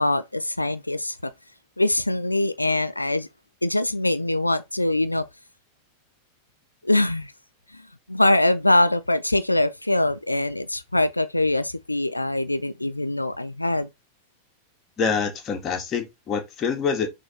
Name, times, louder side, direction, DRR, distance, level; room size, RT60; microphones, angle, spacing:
voice 1, 0.0-1.3 1.8-3.3 3.6-5.3 6.8-7.3 7.7-7.8 8.1-13.9, left 1 dB, 85° left, 0.4 m, -23 dB
voice 2, 15.0-17.1, left 6 dB, 30° left, 2.0 m, -26 dB
6.2 x 3.7 x 4.2 m
figure-of-eight pair, 90°, 0 cm